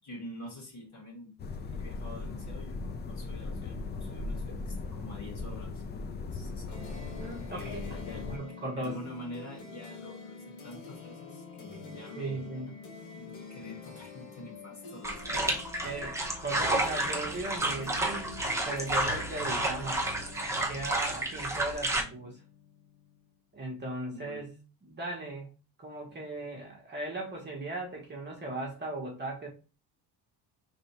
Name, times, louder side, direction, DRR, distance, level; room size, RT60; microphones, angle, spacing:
voice 1, 0.0-1.3 1.8-5.8 6.2-7.0 7.5-8.3 8.8-12.5 13.1-15.6 24.1-24.4, left 1 dB, 45° left, -1 dB, 2.2 m, -46 dB
sound 1, 1.4-8.4, left 3 dB, 25° left, 0.3 m, -38 dB
sound 2, 6.7-23.3, left 5 dB, 90° left, 1.7 m, -47 dB
voice 2, 7.2-8.0 8.3-9.0 12.2-12.7 15.3-15.6 15.8-16.2 16.4-20.0 20.5-22.4 23.5-25.5 25.8-29.5, right 2 dB, 25° right, -1 dB, 1.1 m, -38 dB
sound 3, 15.0-22.0, right 2 dB, 5° right, 0.8 m, -31 dB
3.5 x 2.6 x 4.2 m, 0.33 s
cardioid pair, 135°, 41 cm